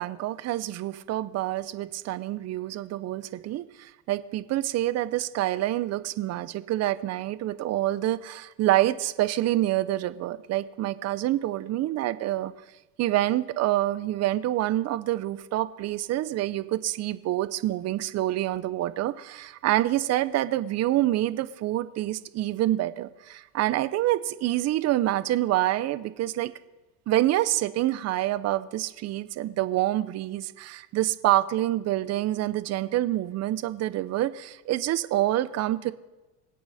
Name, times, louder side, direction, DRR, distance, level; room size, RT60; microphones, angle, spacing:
voice 1, 0.0-12.5 13.0-26.5 27.1-35.9, right 14 dB, 40° right, 15 dB, 0.7 m, -27 dB
25.5 x 8.6 x 4.2 m, 1.1 s
supercardioid pair, 130°, 41 cm